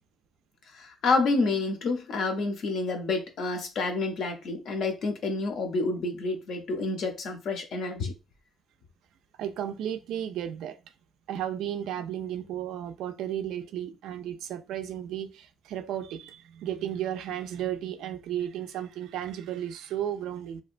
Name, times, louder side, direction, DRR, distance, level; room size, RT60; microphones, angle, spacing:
voice 1, 0.7-8.1, left 3 dB, 55° left, 0.6 m, -28 dB
voice 2, 9.4-10.8 11.3-20.6, right 10 dB, 80° right, 0.3 m, -34 dB
2.8 x 2.1 x 2.4 m
cardioid pair, 170°, 0 cm